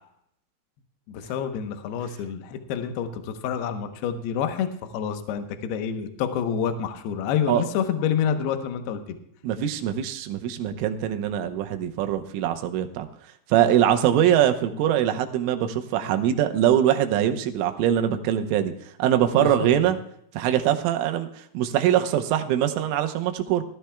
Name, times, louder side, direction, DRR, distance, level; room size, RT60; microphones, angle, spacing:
voice 1, 1.1-9.2 19.4-19.9, left 8 dB, 75° left, 7 dB, 2.4 m, -28 dB
voice 2, 9.4-13.1 13.5-18.7 19.0-20.0 20.3-21.3 21.5-23.6, right 10 dB, 80° right, 7 dB, 3.3 m, -22 dB
20.0 x 13.0 x 2.3 m, 0.72 s
omnidirectional pair, 5.9 m